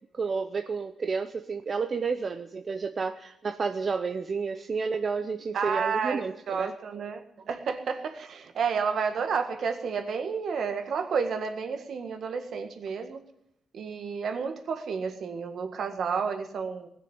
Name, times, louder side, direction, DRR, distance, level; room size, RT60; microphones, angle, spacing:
voice 1, 0.2-6.7, right 5 dB, 35° right, 7 dB, 0.7 m, -31 dB
voice 2, 5.5-13.2 13.7-16.9, right 5 dB, 55° right, 7 dB, 1.8 m, -31 dB
19.5 x 7.1 x 9.4 m, 0.81 s
wide cardioid pair, 160°, 0 cm